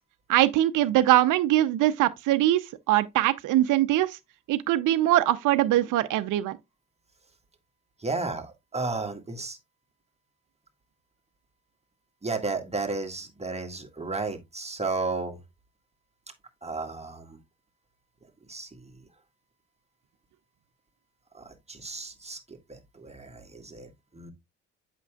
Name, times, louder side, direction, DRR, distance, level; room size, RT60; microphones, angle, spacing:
voice 1, 0.3-4.2 4.5-6.6, right 14 dB, 65° right, 0.7 m, -22 dB
voice 2, 8.0-9.6 12.2-15.4 16.6-17.4 18.5-19.0 21.3-24.3, right 3 dB, 20° right, 1.8 m, -33 dB
8.1 x 6.1 x 2.3 m
hypercardioid pair, 60°, 34 cm